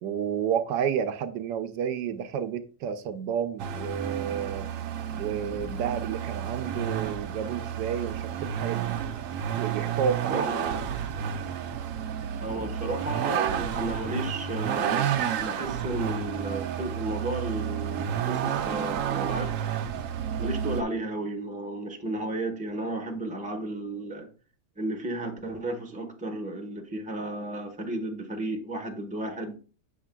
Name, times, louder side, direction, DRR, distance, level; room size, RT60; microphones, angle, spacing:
voice 1, 0.0-4.7 5.2-9.0 9.5-10.5, right 8 dB, 80° right, 1.2 m, -30 dB
Vehicle, 3.6-20.8, right 8 dB, 65° right, 0.8 m, -31 dB
voice 2, 10.3-10.8 12.4-15.1 15.4-19.6 20.4-24.3 24.8-29.6, right 1 dB, 5° right, 1.0 m, -33 dB
7.3 x 6.9 x 2.3 m
omnidirectional pair, 1.8 m